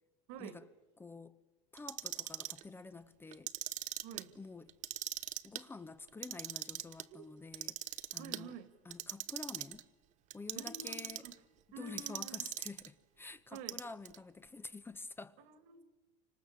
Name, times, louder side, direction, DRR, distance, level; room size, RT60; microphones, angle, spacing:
voice 1, 0.3-0.6 4.0-4.4 7.1-7.3 8.2-8.7 10.6-11.3 11.7-12.4 13.5-13.8 15.4-15.8, right 7 dB, 65° right, 2.3 m, -49 dB
voice 2, 1.0-1.4 1.7-3.5 4.4-4.7 5.4-7.8 8.1-8.5 8.8-9.8 10.3-11.2 11.8-15.3, left 3 dB, 15° left, 0.9 m, -49 dB
Clock, 1.8-2.6 3.3-4.2 4.7-5.6 6.1-7.0 7.5-8.4 8.9-9.8 10.3-11.3 12.0-12.9 13.5-14.2, right 14 dB, 45° right, 1.0 m, -40 dB
29.0 x 26.0 x 7.3 m
supercardioid pair, 110°, 17 cm